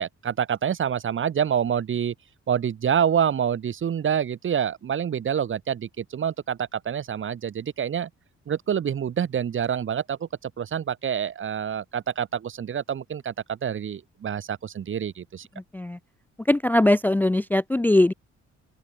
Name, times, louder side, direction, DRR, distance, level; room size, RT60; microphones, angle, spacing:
voice 1, 0.0-2.1 2.5-8.1 8.5-15.5, right 8 dB, 40° right, 0.9 m, -27 dB
voice 2, 16.5-18.1, left 1 dB, 5° left, 0.4 m, -20 dB
open air
cardioid pair, 90°, 30 cm